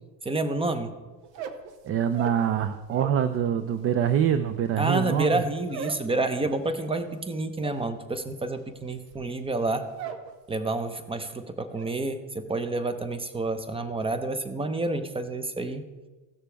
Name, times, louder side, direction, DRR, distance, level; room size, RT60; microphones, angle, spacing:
voice 1, 0.2-0.9 4.8-9.9 10.5-15.8, right 2 dB, 10° right, 10 dB, 0.8 m, -29 dB
sound 1, 1.2-3.3 3.6-10.3 10.6-11.1 11.4-11.9, right 7 dB, 85° right, 1.1 m, -41 dB
voice 2, 1.9-5.4, right 9 dB, 30° right, 11 dB, 0.4 m, -25 dB
16.0 x 6.7 x 3.4 m, 1.2 s
supercardioid pair, 105°, 47 cm